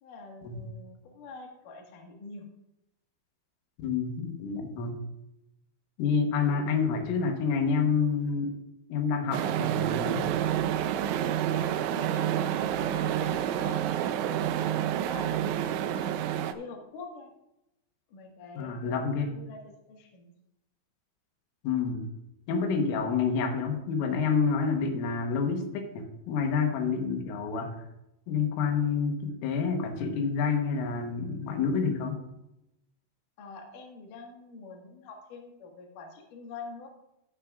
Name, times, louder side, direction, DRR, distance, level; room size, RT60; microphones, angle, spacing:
voice 1, 0.0-2.5 11.5-17.3 18.1-20.3 33.4-36.9, left 3 dB, 55° left, 1 dB, 2.5 m, -46 dB
voice 2, 3.8-5.0 6.0-8.5 8.9-10.3 18.6-19.3 21.6-22.1 22.5-27.8 28.3-32.2, left 5 dB, 90° left, 4 dB, 3.8 m, -28 dB
sound 1, 9.3-16.5, right 10 dB, 85° right, 2.9 m, -28 dB
14.5 x 9.7 x 2.4 m, 0.85 s
omnidirectional pair, 5.6 m